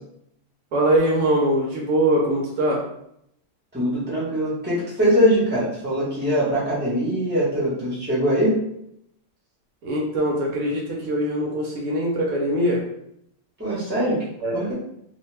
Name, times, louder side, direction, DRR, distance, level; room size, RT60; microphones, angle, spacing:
voice 1, 0.7-2.8 9.8-12.8 14.4-14.7, right 1 dB, 70° right, -2 dB, 1.1 m, -22 dB
voice 2, 3.7-8.6 13.6-14.3 14.5-14.7, equal, 10° right, -7 dB, 0.8 m, -22 dB
2.7 x 2.2 x 3.2 m, 0.75 s
omnidirectional pair, 1.6 m